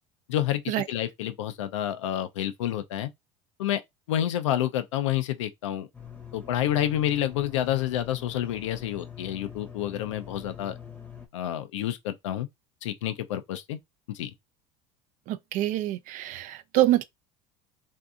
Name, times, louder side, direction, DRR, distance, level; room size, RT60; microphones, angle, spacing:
voice 1, 0.3-3.1 3.6-3.8 4.1-5.9 6.3-10.7 11.3-12.5 12.8-13.8 14.1-14.3, left 12 dB, 90° left, 0.5 m, -29 dB
sound 1, 5.9-11.3, left 8 dB, 10° left, 0.8 m, -43 dB
voice 2, 15.3-17.0, right 14 dB, 55° right, 0.4 m, -25 dB
2.6 x 2.6 x 2.3 m
supercardioid pair, 90°, 15 cm